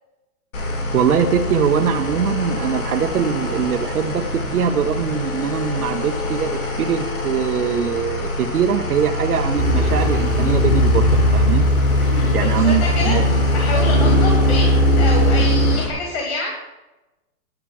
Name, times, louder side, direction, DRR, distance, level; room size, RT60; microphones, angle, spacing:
sound 1, 0.5-15.9, left 2 dB, 60° left, 3.8 m, -26 dB
voice 1, 0.9-11.7 12.3-13.3, right 7 dB, 75° right, 3 dB, 0.9 m, -22 dB
sound 2, 9.6-15.8, equal, 15° left, 1.3 m, -17 dB
voice 2, 12.0-14.7 15.0-16.7, left 2 dB, 45° left, -1 dB, 2.4 m, -27 dB
11.0 x 5.9 x 7.2 m, 1.0 s
hypercardioid pair, 175°, 45 cm